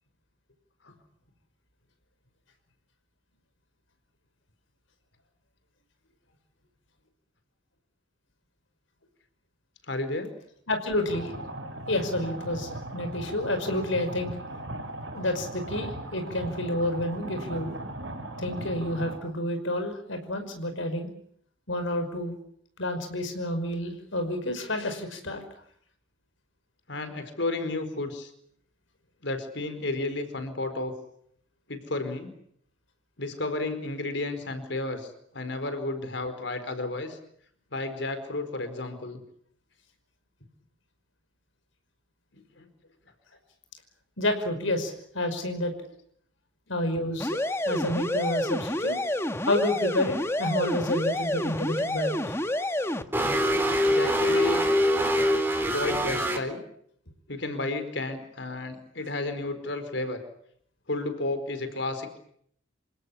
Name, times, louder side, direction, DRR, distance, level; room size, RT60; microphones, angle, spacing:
voice 1, 9.9-10.3 26.9-28.3 29.2-30.9 31.7-32.3 33.2-37.2 37.7-39.2 42.3-42.7 53.9-54.7 55.7-56.6 57.3-60.2 60.9-62.2, left 2 dB, 65° left, 9 dB, 4.6 m, -32 dB
voice 2, 10.7-11.3 11.9-14.4 15.1-17.8 18.4-21.1 21.7-22.4 22.8-25.4 44.2-45.7 46.7-47.4 47.7-49.0 49.4-52.3, left 1 dB, 85° left, 7 dB, 5.5 m, -29 dB
sound 1, 11.0-19.2, right 1 dB, 75° right, 5.3 m, -38 dB
sound 2, 47.2-53.0, left 1 dB, 15° left, 1.2 m, -29 dB
sound 3, 53.1-56.4, equal, 10° right, 3.7 m, -24 dB
28.5 x 17.5 x 10.0 m, 0.69 s
head